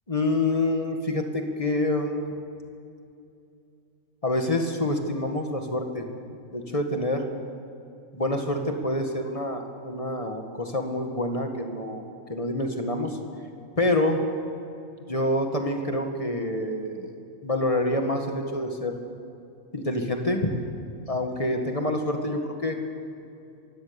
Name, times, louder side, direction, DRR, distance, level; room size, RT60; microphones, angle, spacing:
voice 1, 0.1-2.3 4.2-6.1 6.5-7.3 8.1-12.0 12.3-13.2 13.8-14.2 15.1-17.1 17.4-19.0 19.7-20.6 21.1-22.8, left 1 dB, 25° left, 4 dB, 1.9 m, -27 dB
23.0 x 17.0 x 7.0 m, 2.6 s
omnidirectional pair, 1.4 m